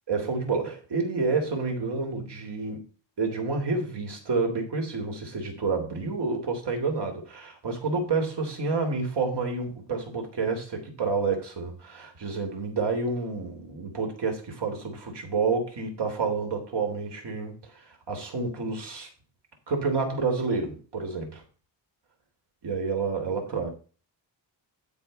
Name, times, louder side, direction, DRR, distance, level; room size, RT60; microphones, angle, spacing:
voice 1, 0.1-2.9 3.2-19.1 19.7-21.4 22.6-23.7, right 4 dB, 60° right, 3.4 m, -29 dB
13.0 x 4.9 x 5.5 m
wide cardioid pair, 170°, 46 cm